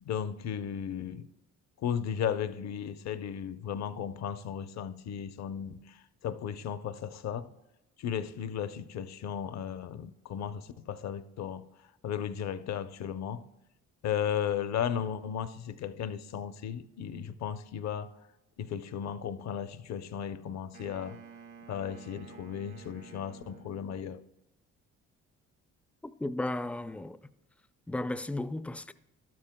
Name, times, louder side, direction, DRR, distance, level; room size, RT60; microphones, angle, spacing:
voice 1, 0.0-1.3 1.8-7.5 8.0-11.7 12.0-13.4 14.0-18.1 18.6-21.2 21.7-24.2, left 8 dB, 60° left, 0.7 m, -35 dB
Wind instrument woodwind instrument, 20.7-24.2, right 6 dB, 75° right, 1.3 m, -51 dB
voice 2, 26.2-27.2 27.9-28.9, left 2 dB, 5° left, 0.3 m, -34 dB
12.5 x 12.0 x 2.2 m
cardioid pair, 90°, 30 cm